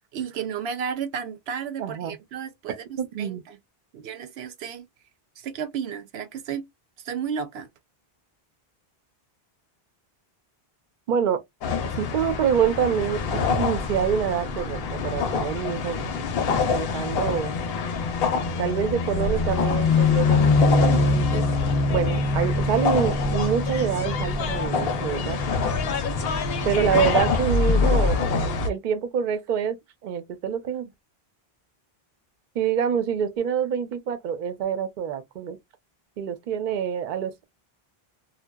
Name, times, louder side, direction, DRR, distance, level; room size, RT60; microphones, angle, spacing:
voice 1, 0.1-3.6 3.9-4.9 5.4-6.6 7.0-7.7, right 7 dB, 85° right, 0.8 m, -33 dB
voice 2, 1.8-2.2 3.0-3.4 11.1-11.4 12.0-16.0 16.7-17.5 18.6-21.5 21.9-25.4 26.6-28.2 28.6-29.8 30.0-30.9 32.5-35.6 36.2-37.4, right 8 dB, 60° right, 0.6 m, -26 dB
sound 1, 11.6-28.7, left 4 dB, 75° left, 0.8 m, -24 dB
2.7 x 2.2 x 2.2 m
omnidirectional pair, 1.0 m